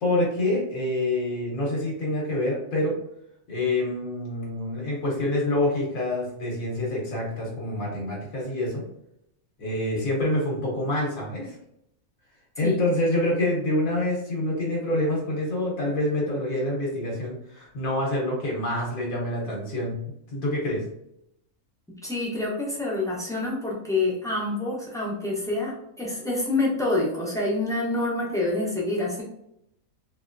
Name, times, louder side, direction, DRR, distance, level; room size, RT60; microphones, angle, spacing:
voice 1, 0.0-3.0 3.5-8.8 9.6-11.6 12.6-20.0 20.3-20.8, left 1 dB, 75° left, -3 dB, 1.3 m, -26 dB
voice 2, 22.0-29.2, left 2 dB, 5° left, -5 dB, 0.4 m, -27 dB
3.0 x 2.7 x 2.4 m, 0.79 s
omnidirectional pair, 1.5 m